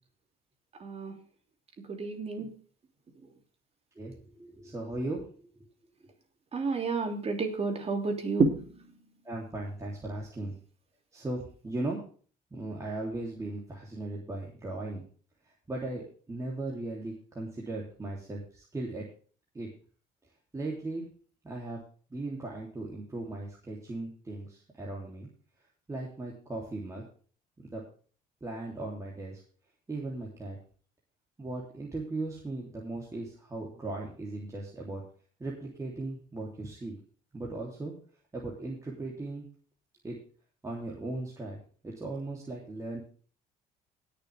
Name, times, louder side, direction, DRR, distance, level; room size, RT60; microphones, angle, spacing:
voice 1, 0.8-1.1 1.9-2.5 6.5-8.6, right 4 dB, 35° right, 4 dB, 3.0 m, -29 dB
voice 2, 3.9-5.5 9.2-10.6 11.1-12.0 12.5-15.0 15.7-19.1 19.5-19.7 20.5-21.1 21.4-21.8 22.1-25.3 25.9-27.0 27.6-27.8 28.4-29.4 29.9-30.6 31.4-35.0 35.4-37.0 37.3-37.9 38.3-39.5 40.0-40.2 40.6-43.0, right 2 dB, 20° right, -3 dB, 3.3 m, -37 dB
20.0 x 6.9 x 3.5 m, 0.41 s
cardioid pair, 110°, 17 cm